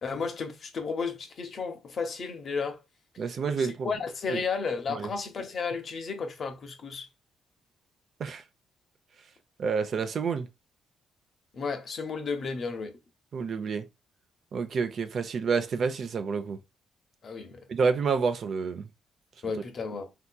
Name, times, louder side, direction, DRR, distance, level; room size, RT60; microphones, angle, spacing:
voice 1, 0.0-2.8 3.6-7.1 11.5-13.0 17.2-17.6 19.4-20.1, left 5 dB, 50° left, 0.8 m, -33 dB
voice 2, 3.2-3.9 4.3-4.4 4.9-5.1 8.2-8.4 9.6-10.5 13.3-13.9 14.5-16.6 17.7-18.9, right 5 dB, 55° right, 0.5 m, -28 dB
3.6 x 2.8 x 2.2 m
cardioid pair, 90°, 0 cm